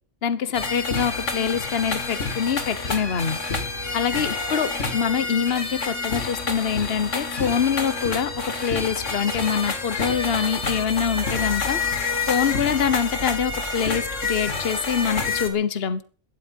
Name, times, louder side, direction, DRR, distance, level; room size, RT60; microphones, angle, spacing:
voice 1, 0.2-3.4 3.9-11.8 12.3-16.0, left 7 dB, 55° left, 1.4 m, -25 dB
sound 1, 0.5-15.5, left 4 dB, 75° left, 2.7 m, -28 dB
17.5 x 13.0 x 5.4 m
omnidirectional pair, 1.3 m